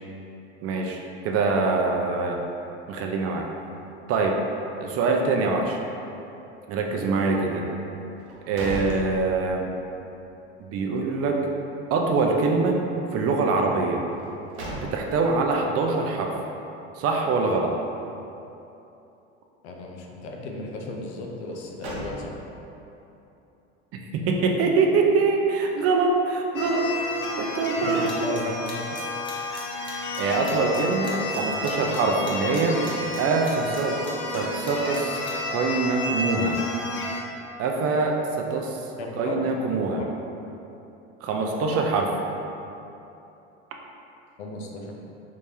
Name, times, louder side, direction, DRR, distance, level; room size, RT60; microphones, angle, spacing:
voice 1, 0.6-2.4 2.9-3.5 4.1-4.4 4.8-5.8 6.7-7.6 8.5-9.7 10.6-11.4 11.9-12.8 13.1-14.0 14.7-16.3 17.0-17.7 24.1-26.9 27.4-28.1 29.7-32.8 33.2-34.0 34.3-35.2 35.5-36.6 37.6-38.8 39.2-40.0 41.2-42.1, right 3 dB, 45° right, 1 dB, 0.5 m, -24 dB
sound 1, 8.2-9.8 10.2-10.3 14.1-15.4 21.4-22.7, right 1 dB, 85° right, 0.8 m, -37 dB
voice 2, 19.6-22.3 27.8-28.7 39.0-39.4 40.0-40.2 44.4-44.9, left 2 dB, 75° left, 0 dB, 0.6 m, -35 dB
sound 2, 26.5-37.2, left 2 dB, 35° left, 0.5 m, -31 dB
sound 3, 28.1-35.3, left 1 dB, 15° left, 0.9 m, -41 dB
3.4 x 3.2 x 2.7 m, 2.9 s
hypercardioid pair, 75°, 32 cm